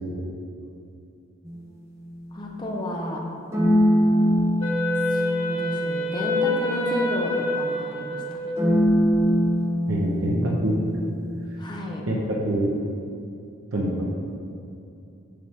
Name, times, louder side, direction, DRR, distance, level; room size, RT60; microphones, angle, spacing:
sound 1, 1.5-2.5 3.5-7.6 8.6-11.8, equal, 10° right, 0.7 m, -24 dB
voice 1, 2.3-3.2 5.1-8.5 11.6-12.0, left 1 dB, 20° left, -1 dB, 0.7 m, -31 dB
Wind instrument woodwind instrument, 4.6-8.9, left 1 dB, 85° left, 1.5 m, -27 dB
voice 2, 9.9-10.7 12.1-12.7 13.7-14.1, right 1 dB, 65° right, -3 dB, 0.9 m, -25 dB
6.7 x 6.0 x 3.6 m, 2.6 s
head